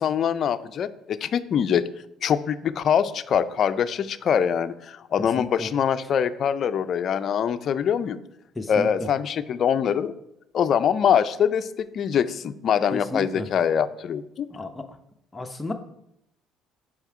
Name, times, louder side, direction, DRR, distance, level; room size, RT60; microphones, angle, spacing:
voice 1, 0.0-1.9 2.2-8.2 8.7-10.1 10.5-14.5, left 8 dB, 55° left, 12 dB, 0.4 m, -23 dB
voice 2, 5.4-5.7 8.6-9.1 12.9-13.5 14.5-14.8 15.3-15.7, left 2 dB, 15° left, 5 dB, 0.7 m, -33 dB
5.4 x 4.9 x 4.7 m, 0.80 s
supercardioid pair, 85°, 0 cm